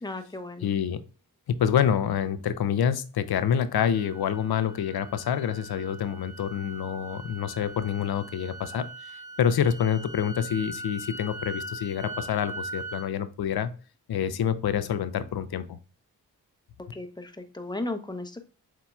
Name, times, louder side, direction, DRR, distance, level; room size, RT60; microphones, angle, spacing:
voice 1, 0.0-0.7 16.9-18.4, left 2 dB, 10° left, 7 dB, 0.9 m, -35 dB
voice 2, 0.6-1.0 1.5-9.1 9.4-13.7 14.1-15.6, left 8 dB, 65° left, 12 dB, 0.6 m, -27 dB
sound 1, 3.9-13.1, right 2 dB, 10° right, 1.3 m, -41 dB
7.2 x 2.9 x 2.3 m, 0.37 s
cardioid pair, 50°, 40 cm